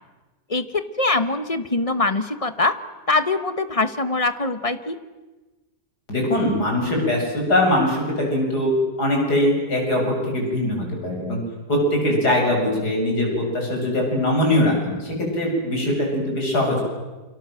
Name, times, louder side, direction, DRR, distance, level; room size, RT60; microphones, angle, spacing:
voice 1, 0.5-2.7 3.1-5.0, left 3 dB, 25° left, 11 dB, 1.2 m, -23 dB
voice 2, 6.1-8.7 9.0-11.4 11.7-16.8, left 1 dB, 85° left, 0 dB, 8.5 m, -22 dB
28.5 x 25.5 x 7.8 m, 1.2 s
omnidirectional pair, 1.7 m